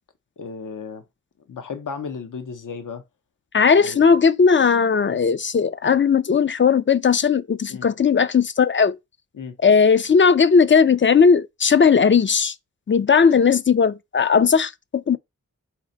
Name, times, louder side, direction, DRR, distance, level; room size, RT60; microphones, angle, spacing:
voice 1, 0.4-1.0 1.5-3.0 3.8-4.0 5.1-5.2 7.7-7.9 9.3-9.6, left 5 dB, 75° left, 0.7 m, -34 dB
voice 2, 3.5-9.0 9.6-12.5 12.9-15.2, left 6 dB, 40° left, 0.4 m, -17 dB
4.1 x 2.8 x 3.9 m
cardioid pair, 45°, 32 cm